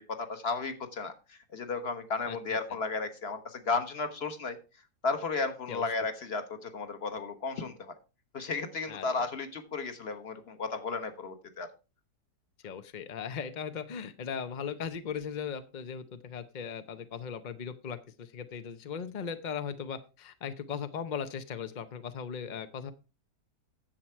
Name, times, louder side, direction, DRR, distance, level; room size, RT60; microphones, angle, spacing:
voice 1, 0.0-4.6 5.0-7.9 8.3-11.7, left 4 dB, 40° left, 9 dB, 1.3 m, -34 dB
voice 2, 2.3-2.6 5.7-5.8 8.9-9.1 12.6-22.9, left 7 dB, 65° left, 11 dB, 0.4 m, -38 dB
10.5 x 7.5 x 4.5 m, 0.30 s
omnidirectional pair, 1.8 m